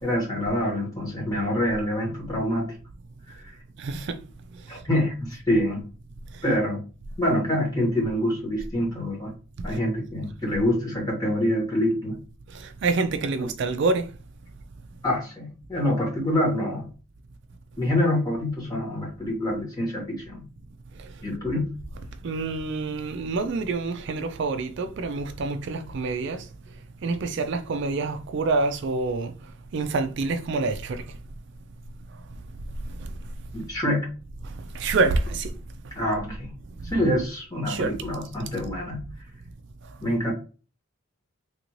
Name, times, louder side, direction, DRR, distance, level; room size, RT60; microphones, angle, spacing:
voice 1, 0.0-2.8 3.3-3.5 4.7-5.8 6.4-6.8 7.2-9.3 9.6-12.2 13.4-13.5 15.0-16.9 17.8-20.4 21.2-21.7 33.5-34.1 35.9-36.5 36.8-39.0 40.0-40.3, left 1 dB, 15° left, 1.5 m, -26 dB
voice 2, 3.8-4.2 4.7-4.8 6.3-6.5 9.7-9.8 12.5-14.1 21.0-21.2 22.2-26.5 27.0-29.3 29.7-31.0 32.8-33.1 34.4-35.5 36.8-36.9 37.6-38.1, right 3 dB, 55° right, 0.3 m, -27 dB
3.5 x 2.6 x 3.0 m
head